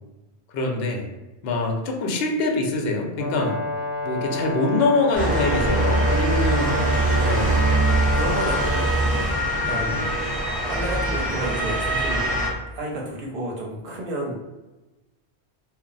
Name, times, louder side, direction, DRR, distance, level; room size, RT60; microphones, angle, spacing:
voice 1, 0.5-1.1 1.4-3.6 4.0-6.7 7.2-7.6 9.7-10.0, left 2 dB, 65° left, 1 dB, 0.7 m, -24 dB
Brass instrument, 3.1-9.0, left 2 dB, 35° left, 0.3 m, -29 dB
Motor vehicle (road) / Siren, 5.1-12.5, right 1 dB, 10° right, 0.6 m, -23 dB
voice 2, 6.5-7.4 8.1-10.3 10.7-12.3 12.7-14.3, right 1 dB, 60° right, -2 dB, 0.9 m, -32 dB
2.2 x 2.0 x 3.8 m, 1.1 s
omnidirectional pair, 1.1 m